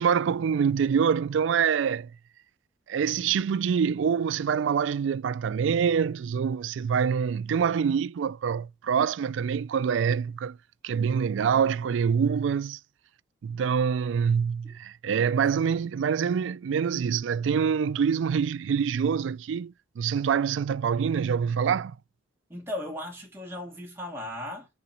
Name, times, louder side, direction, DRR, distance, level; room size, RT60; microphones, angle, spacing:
voice 1, 0.0-2.1 2.9-10.6 10.8-12.8 13.4-22.0, right 7 dB, 75° right, 0.3 m, -25 dB
voice 2, 22.5-24.7, left 1 dB, 15° right, 2.6 m, -36 dB
7.0 x 3.8 x 5.9 m
head